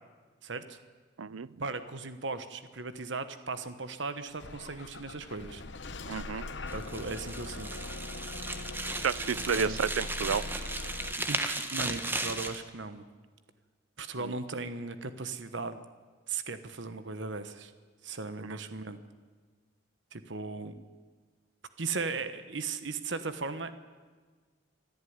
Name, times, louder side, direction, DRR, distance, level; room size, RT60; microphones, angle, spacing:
voice 1, 0.4-0.8 1.6-5.6 6.7-7.8 9.3-9.9 11.2-13.0 14.0-15.8 16.3-17.7 18.0-19.0 20.1-20.8 21.8-23.7, right 4 dB, 65° right, 11 dB, 1.2 m, -37 dB
Bus / Engine starting, 4.4-11.1, left 2 dB, 60° left, 1.1 m, -41 dB
voice 2, 6.1-6.4 9.0-10.5 14.2-14.4, right 6 dB, 90° right, 19 dB, 0.6 m, -31 dB
sound 1, 6.7-12.6, right 2 dB, 10° right, 1.2 m, -36 dB
24.0 x 13.5 x 9.6 m, 1.4 s
head